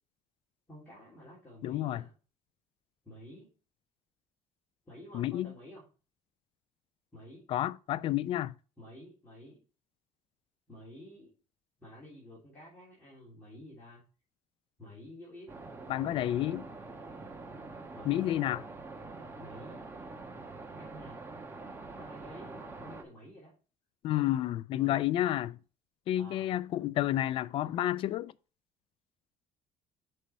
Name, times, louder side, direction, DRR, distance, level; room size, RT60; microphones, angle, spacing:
voice 1, 0.7-2.1 3.0-3.5 4.8-5.8 7.1-7.5 8.8-9.6 10.7-11.3 11.8-14.0 14.8-15.5 17.9-18.4 19.4-19.9 20.8-21.2 22.0-23.5 24.7-25.1 26.1-26.6, equal, 15° left, 3.3 m, -51 dB
voice 2, 1.6-2.0 5.1-5.5 7.5-8.5 15.9-16.6 18.0-18.6 24.0-25.5 26.1-28.3, left 13 dB, 45° left, 0.3 m, -30 dB
sound 1, 15.5-23.0, right 3 dB, 20° right, 0.9 m, -45 dB
6.3 x 5.4 x 4.3 m
cardioid pair, 145°, 12 cm